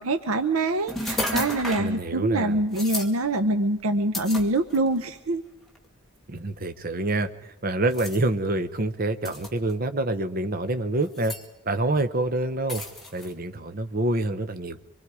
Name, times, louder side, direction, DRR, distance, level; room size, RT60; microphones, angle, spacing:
voice 1, 0.0-5.4, right 2 dB, 80° right, 10 dB, 0.8 m, -25 dB
sound 1, 0.9-1.9 2.7-3.1 4.1-5.0 5.7-5.9 7.9-8.2 9.2-9.7 11.0-11.4 12.7-13.3, left 1 dB, ahead, 2.0 m, -32 dB
voice 2, 1.8-2.6 6.3-11.3 11.6-12.8 13.1-14.8, right 2 dB, 40° right, 9 dB, 0.8 m, -27 dB
25.5 x 23.0 x 4.9 m, 0.97 s
head